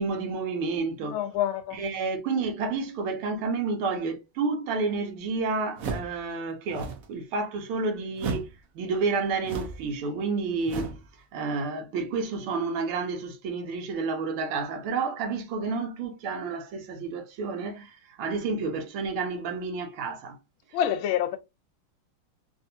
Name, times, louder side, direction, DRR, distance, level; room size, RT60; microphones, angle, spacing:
voice 1, 0.0-1.2 1.7-8.5 8.8-11.0 11.3-20.4, right 4 dB, 85° right, 1.8 m, -30 dB
voice 2, 1.0-1.8 20.7-21.4, left 10 dB, 80° left, 1.4 m, -27 dB
sound 1, 5.8-6.2 6.7-7.1 8.2-8.6 9.4-9.9 10.7-11.1, right 4 dB, 70° right, 0.8 m, -34 dB
3.9 x 2.6 x 2.6 m
omnidirectional pair, 2.3 m